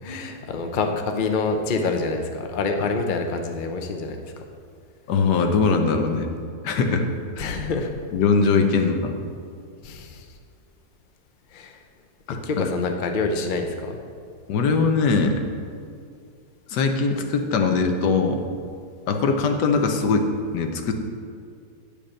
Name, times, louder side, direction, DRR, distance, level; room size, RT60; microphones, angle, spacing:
voice 1, 0.0-4.2 7.4-7.9 9.8-10.3 11.5-11.7 12.4-14.0, left 3 dB, 50° left, 4 dB, 0.6 m, -26 dB
voice 2, 5.1-6.3 6.6-7.1 7.4-7.5 8.1-9.1 12.3-12.7 14.5-15.4 16.7-18.4 19.1-20.9, left 4 dB, 80° left, 5 dB, 1.4 m, -21 dB
8.7 x 5.3 x 6.4 m, 2.3 s
omnidirectional pair, 1.8 m